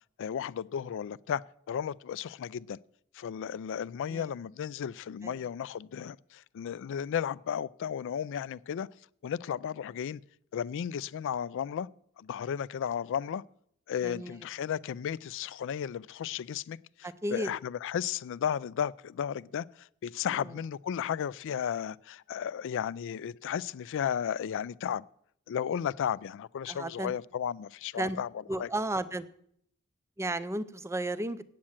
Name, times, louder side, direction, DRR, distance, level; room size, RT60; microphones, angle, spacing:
voice 1, 0.2-2.8 3.1-8.9 9.2-10.2 10.5-11.9 12.2-13.4 13.9-25.0 25.5-28.3 28.6-28.7, left 8 dB, 60° left, 0.3 m, -34 dB
voice 2, 14.0-14.4 17.0-17.5 20.4-20.5 26.7-27.1 28.0-28.2 28.5-29.2 30.2-31.4, right 1 dB, 15° right, 0.5 m, -33 dB
8.6 x 7.5 x 8.7 m
head